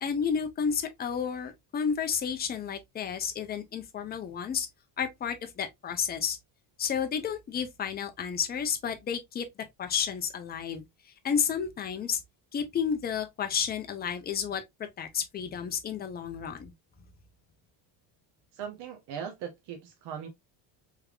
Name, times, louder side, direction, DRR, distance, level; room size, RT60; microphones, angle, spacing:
voice 1, 0.0-4.7 5.0-6.4 6.8-9.5 9.8-10.8 11.2-12.2 12.5-16.7, left 7 dB, 25° left, 0.3 m, -31 dB
voice 2, 18.5-20.3, right 8 dB, 60° right, 0.8 m, -39 dB
3.3 x 3.3 x 2.3 m
cardioid pair, 155°, 47 cm